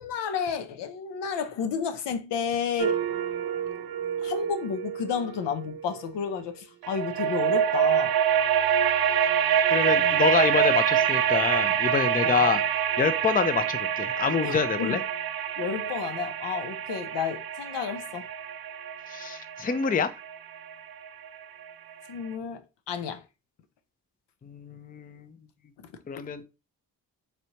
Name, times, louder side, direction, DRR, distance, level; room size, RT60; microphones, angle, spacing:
voice 1, 0.0-3.0 4.2-8.1 10.0-10.2 12.2-12.4 14.4-15.0 15.6-18.3 22.1-23.2 25.8-25.9, left 7 dB, 75° left, 0.7 m, -31 dB
sound 1, 2.8-6.1 6.8-21.7, right 9 dB, 60° right, 0.6 m, -26 dB
voice 2, 9.7-12.6 13.0-15.0 19.1-20.1 24.4-25.3 26.1-26.4, left 6 dB, 20° left, 0.5 m, -26 dB
4.1 x 3.3 x 2.9 m
cardioid pair, 60°, 42 cm